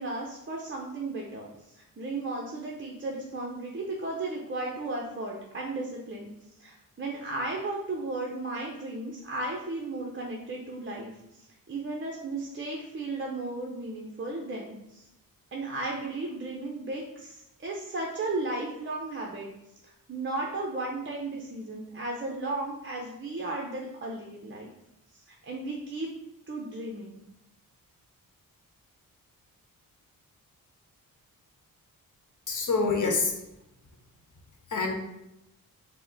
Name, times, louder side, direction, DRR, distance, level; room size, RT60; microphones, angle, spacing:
voice 1, 0.0-1.5 2.0-6.3 6.6-15.0 15.5-19.5 19.8-24.7 25.1-26.1 26.5-27.2, right 2 dB, 35° right, -1 dB, 0.6 m, -35 dB
voice 2, 32.5-33.3 34.7-34.9, left 4 dB, 55° left, 3 dB, 1.0 m, -26 dB
5.4 x 2.1 x 3.8 m, 0.86 s
cardioid pair, 95°, 35 cm